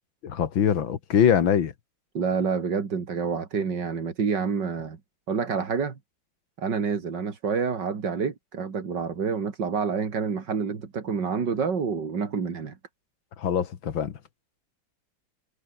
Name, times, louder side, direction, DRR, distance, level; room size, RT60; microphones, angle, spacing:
voice 1, 0.2-1.7 13.4-14.1, left 8 dB, 85° left, 2.3 m, -23 dB
voice 2, 2.1-5.0 5.3-6.0 6.6-12.8, right 5 dB, 65° right, 3.0 m, -28 dB
omnidirectional pair, 2.1 m